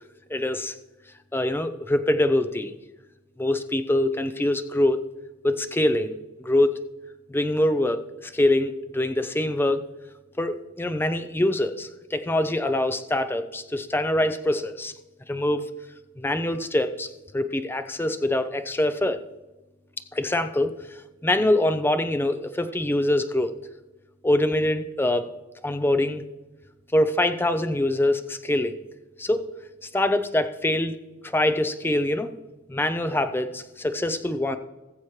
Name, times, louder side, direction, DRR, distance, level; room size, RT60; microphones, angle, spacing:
voice 1, 0.3-0.7 1.3-2.7 3.4-5.0 5.4-6.7 7.3-9.8 10.4-14.9 15.3-15.7 16.2-19.2 20.1-20.7 21.2-23.5 24.2-25.3 25.6-26.2 26.9-28.8 29.2-29.5 29.9-31.0 31.2-32.3 32.7-34.6, left 1 dB, 10° left, 9 dB, 0.6 m, -24 dB
19.0 x 7.3 x 3.2 m, 1.1 s
head